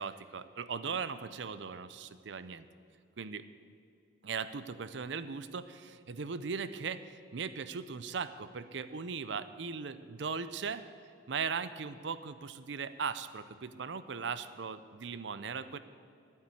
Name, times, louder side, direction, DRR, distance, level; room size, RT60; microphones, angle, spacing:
voice 1, 0.0-2.6 3.2-3.4 4.2-10.8 11.3-15.8, right 5 dB, 70° right, 13 dB, 0.6 m, -38 dB
9.5 x 8.6 x 9.1 m, 2.5 s
head